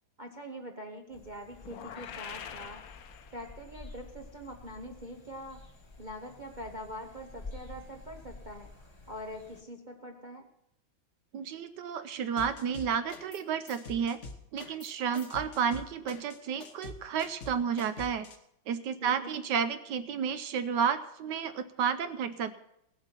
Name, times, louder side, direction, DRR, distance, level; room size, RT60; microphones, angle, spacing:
voice 1, 0.2-2.8 3.3-5.6 6.0-10.5 19.0-19.4, equal, 45° right, 2 dB, 0.6 m, -44 dB
sound 1, 1.1-9.6, left 3 dB, 20° left, 1.0 m, -50 dB
sound 2, 1.6-3.8, left 8 dB, 65° left, 0.9 m, -45 dB
voice 2, 11.3-14.2 14.5-18.3 18.7-22.5, right 7 dB, 70° right, 11 dB, 1.2 m, -31 dB
sound 3, 12.4-13.4 13.7-18.4, left 3 dB, 45° left, 1.2 m, -45 dB
17.0 x 7.9 x 5.9 m, 0.79 s
omnidirectional pair, 2.2 m